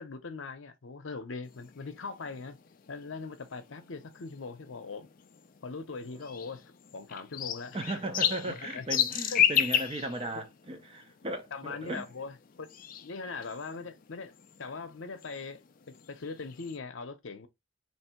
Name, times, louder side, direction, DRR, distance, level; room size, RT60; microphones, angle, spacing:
voice 1, 0.0-2.6 2.9-5.1 5.6-6.6 6.9-7.8 8.4-8.9 9.3-9.7 11.5-12.7 13.0-14.3 14.6-15.6 15.9-17.5, left 4 dB, 70° left, 0.7 m, -41 dB
sound 1, 1.4-16.8, left 9 dB, 40° left, 0.4 m, -35 dB
voice 2, 7.7-12.1, right 1 dB, 25° right, 0.5 m, -36 dB
3.2 x 2.7 x 4.3 m
head